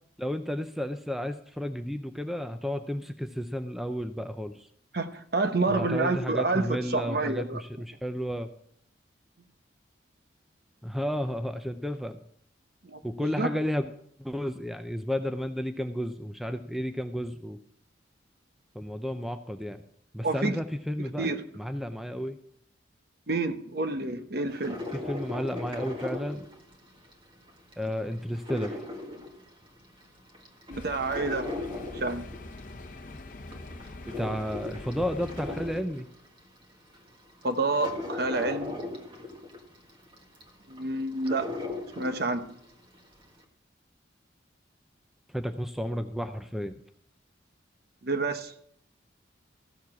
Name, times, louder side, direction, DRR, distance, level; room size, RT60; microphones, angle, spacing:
voice 1, 0.2-4.7 5.7-8.5 10.8-12.2 13.0-13.9 14.2-17.6 18.7-19.8 20.1-21.3 21.6-22.4 24.9-26.5 27.8-28.8 34.1-36.1 45.3-46.8, equal, ahead, 8 dB, 0.5 m, -32 dB
voice 2, 4.9-7.6 12.8-13.5 20.2-20.6 21.2-21.4 23.3-24.9 30.7-32.3 37.4-38.8 40.7-41.5 42.0-42.4 48.0-48.5, right 3 dB, 55° right, 8 dB, 0.9 m, -29 dB
sound 1, 24.5-27.1 27.5-29.9 30.3-32.9 33.3-36.4 36.9-37.0 37.4-42.6 43.0-43.1, left 2 dB, 25° right, 1.6 m, -38 dB
sound 2, 30.7-35.8, left 2 dB, 40° left, 0.8 m, -43 dB
14.5 x 7.2 x 6.0 m, 0.68 s
head